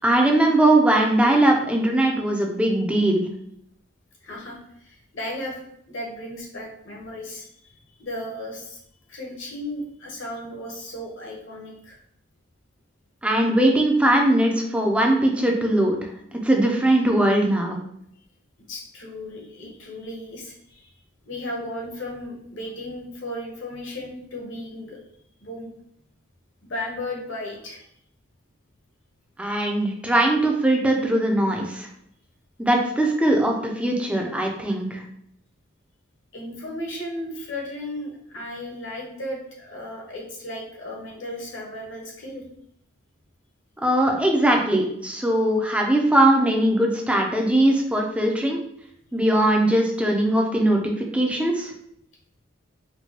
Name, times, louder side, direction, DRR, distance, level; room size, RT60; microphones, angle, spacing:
voice 1, 0.0-3.3 13.2-16.0 16.3-17.8 29.4-31.9 32.6-35.0 43.8-48.6 49.1-51.7, right 1 dB, 5° right, 1 dB, 0.4 m, -20 dB
voice 2, 4.2-5.6 5.9-7.5 8.0-8.8 9.1-12.0 18.6-20.9 21.3-25.0 25.4-25.7 26.6-27.9 36.3-42.4, left 1 dB, 65° left, -1 dB, 0.9 m, -35 dB
4.5 x 2.1 x 2.9 m, 0.72 s
head